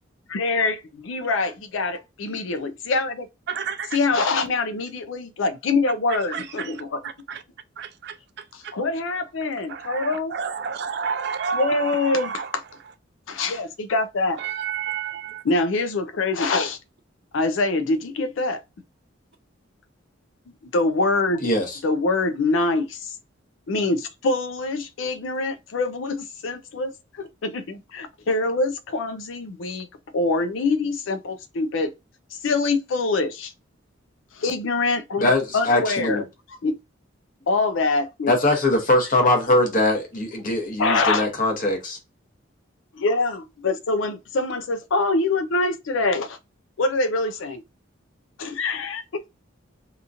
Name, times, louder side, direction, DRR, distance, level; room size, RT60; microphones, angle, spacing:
voice 1, 0.3-0.8 1.1-3.3 3.9-7.0 8.5-10.3 11.5-12.6 13.3-14.4 15.4-16.8 17.3-18.6 20.7-21.5 21.8-22.9 23.7-26.9 27.2-29.9 30.1-31.9 32.3-33.5 34.4-36.2 36.6-36.8 37.5-38.3 40.8-41.3 42.9-46.4 46.8-47.6 48.4-49.0, left 3 dB, 75° left, 0.5 m, -24 dB
voice 2, 3.5-4.0 6.1-6.7 7.0-7.4 7.8-8.7 9.7-12.5 14.4-15.4, right 6 dB, 55° right, 0.4 m, -31 dB
voice 3, 21.4-21.8 35.2-36.2 38.3-42.0, left 1 dB, 45° left, 0.9 m, -21 dB
2.9 x 2.4 x 2.5 m
head